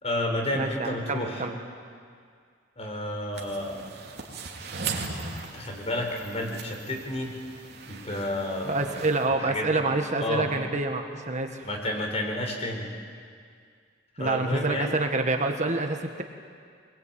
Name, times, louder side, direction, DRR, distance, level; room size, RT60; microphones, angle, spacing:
voice 1, 0.0-1.5 2.8-3.9 5.5-7.4 7.9-9.0 9.4-9.7 10.2-10.5 11.6-12.9 14.2-14.9, left 1 dB, 35° left, 2 dB, 4.5 m, -31 dB
voice 2, 0.5-1.6 8.6-11.7 14.2-16.2, right 2 dB, 40° right, 5 dB, 1.5 m, -27 dB
sound 1, 3.3-9.3, right 4 dB, 60° right, 2.8 m, -38 dB
23.0 x 21.5 x 8.9 m, 2.2 s
head